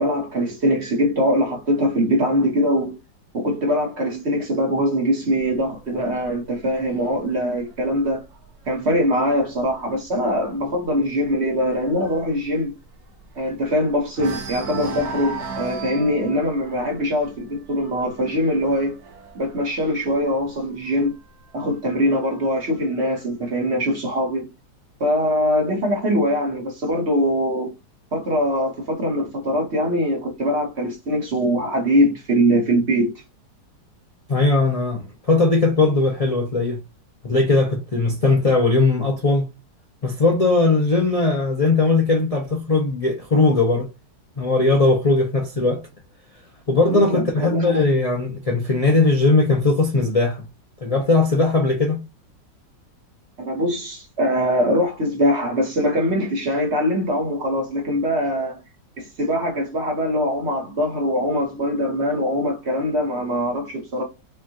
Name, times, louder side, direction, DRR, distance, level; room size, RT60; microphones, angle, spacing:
voice 1, 0.0-3.0 3.3-8.2 8.7-12.7 13.4-19.0 19.3-21.1 21.5-24.5 25.0-27.7 28.1-33.1 46.9-47.8 53.4-58.6 59.0-64.0, equal, 40° right, 1.4 m, -22 dB
sound 1, 5.4-9.0 9.4-9.7 10.0-10.1 10.5-13.7 14.1-20.6 21.5-22.5, right 4 dB, 60° right, 1.5 m, -37 dB
voice 2, 34.3-36.8 37.2-39.5 40.0-43.9 44.4-45.8 46.7-50.4 50.8-52.0, left 3 dB, 45° left, 0.4 m, -19 dB
5.4 x 2.5 x 2.8 m
omnidirectional pair, 1.9 m